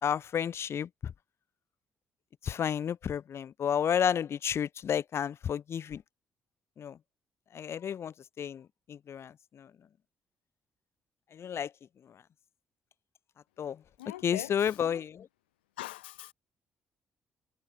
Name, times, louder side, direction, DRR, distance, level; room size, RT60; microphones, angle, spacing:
voice 1, 0.0-0.9 2.4-6.0 6.8-7.0 7.5-8.6 8.9-9.7 11.3-11.7 13.6-13.8 14.2-15.3, left 8 dB, 50° left, 3.8 m, -31 dB
voice 2, 14.0-14.8 15.8-16.3, left 16 dB, 75° left, 2.0 m, -42 dB
figure-of-eight pair, 40°, 6 cm